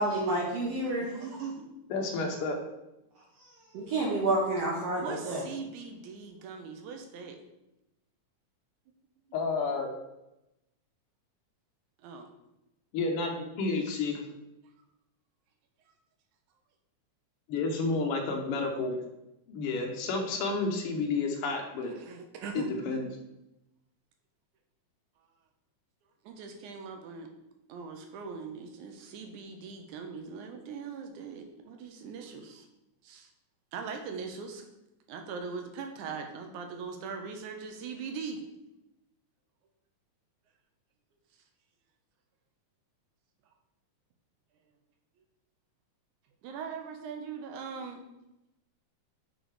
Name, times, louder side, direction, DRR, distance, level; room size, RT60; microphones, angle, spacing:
voice 1, 0.0-1.1 3.7-5.4, right 2 dB, 65° right, -3 dB, 1.8 m, -29 dB
voice 2, 1.0-1.6 5.0-7.4 12.0-12.3 21.8-22.8 26.2-27.3 27.7-32.7 33.0-33.3 33.7-34.7 35.1-38.4 46.4-48.0, right 5 dB, 90° right, 4 dB, 2.2 m, -41 dB
voice 3, 1.9-2.6 9.3-9.9 12.9-14.2 17.5-19.0 19.5-21.9 22.5-23.0, left 3 dB, 65° left, 2 dB, 1.5 m, -30 dB
6.7 x 3.9 x 4.7 m, 0.92 s
omnidirectional pair, 3.4 m